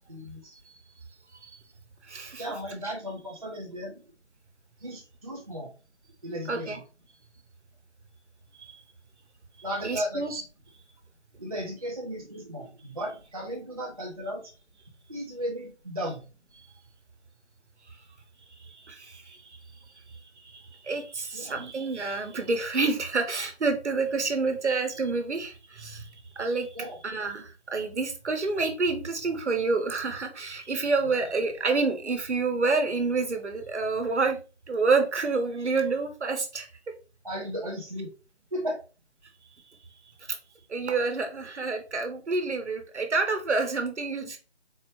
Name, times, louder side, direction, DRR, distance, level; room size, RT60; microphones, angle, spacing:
voice 1, 0.1-0.6 2.4-4.0 4.8-5.7 6.2-6.8 9.6-10.3 11.4-14.4 15.1-16.2 21.3-21.6 26.7-27.0 31.0-31.1 37.2-38.1 38.5-38.8, equal, 35° right, 0 dB, 0.4 m, -35 dB
voice 2, 2.1-2.4 2.8-2.9 6.5-6.8 8.6-8.8 9.8-10.4 18.6-19.6 20.4-26.7 27.0-34.4 34.7-36.7 40.7-44.4, right 4 dB, 80° right, 6 dB, 1.0 m, -28 dB
4.1 x 2.1 x 3.0 m, 0.33 s
figure-of-eight pair, 160°, 34 cm